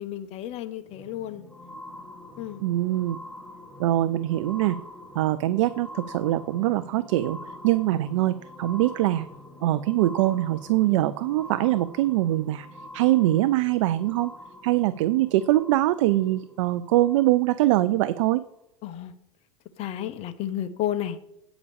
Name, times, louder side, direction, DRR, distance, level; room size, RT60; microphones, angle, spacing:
voice 1, 0.0-1.4 2.4-2.6 18.8-19.1 19.8-21.2, left 11 dB, 40° left, 10 dB, 0.8 m, -32 dB
sound 1, 0.8-17.7 18.4-18.5, left 1 dB, 5° left, 1.6 m, -45 dB
voice 2, 2.6-3.2 3.8-4.8 5.2-7.4 7.6-9.3 9.6-12.7 12.9-14.3 14.6-18.4, right 15 dB, 75° right, 13 dB, 0.5 m, -23 dB
8.5 x 5.0 x 6.9 m, 0.78 s
supercardioid pair, 120°, 17 cm